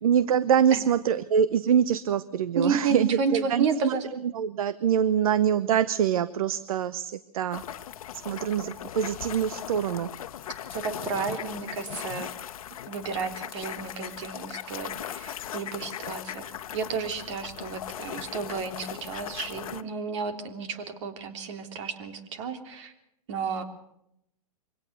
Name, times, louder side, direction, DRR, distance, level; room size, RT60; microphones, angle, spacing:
voice 1, 0.0-3.9 4.3-7.6 8.3-10.1, right 8 dB, 65° right, 17 dB, 0.9 m, -24 dB
voice 2, 2.5-4.1 10.7-12.3 12.9-22.9 23.3-23.6, right 5 dB, 50° right, 8 dB, 3.3 m, -32 dB
sound 1, 7.5-19.8, left 10 dB, 65° left, 1.2 m, -38 dB
24.0 x 17.5 x 6.8 m, 0.78 s
hypercardioid pair, 130°, 19 cm